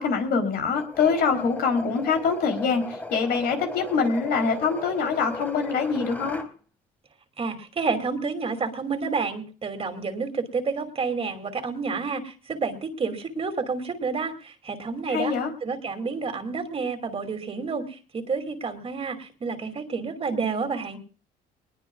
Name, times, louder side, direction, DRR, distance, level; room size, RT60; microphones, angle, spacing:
voice 1, 0.0-6.4 15.1-15.5, left 5 dB, 70° left, 5 dB, 3.6 m, -24 dB
sound 1, 0.7-6.5, left 2 dB, 10° left, 1.9 m, -37 dB
voice 2, 7.4-15.3 15.6-21.0, right 4 dB, 35° right, 7 dB, 2.7 m, -29 dB
21.5 x 20.5 x 2.4 m, 0.36 s
cardioid pair, 110°, 17 cm